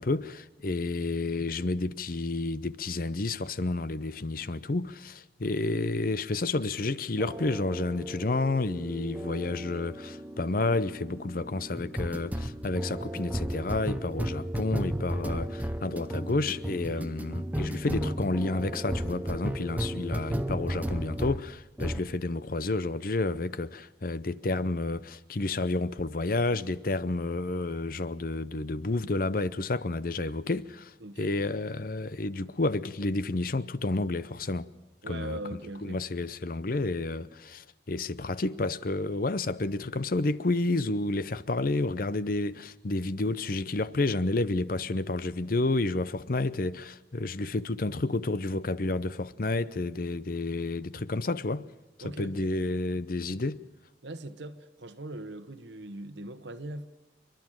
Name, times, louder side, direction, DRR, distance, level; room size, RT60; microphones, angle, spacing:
voice 1, 0.0-34.7 35.1-35.4 35.8-51.7 52.0-53.6, left 2 dB, 50° left, 0.7 m, -30 dB
sound 1, 7.2-21.5 21.8-22.1, right 1 dB, 10° right, 0.7 m, -34 dB
voice 2, 35.0-36.0 52.0-52.5 54.0-56.9, right 1 dB, 75° right, 1.1 m, -41 dB
28.5 x 11.5 x 8.9 m
head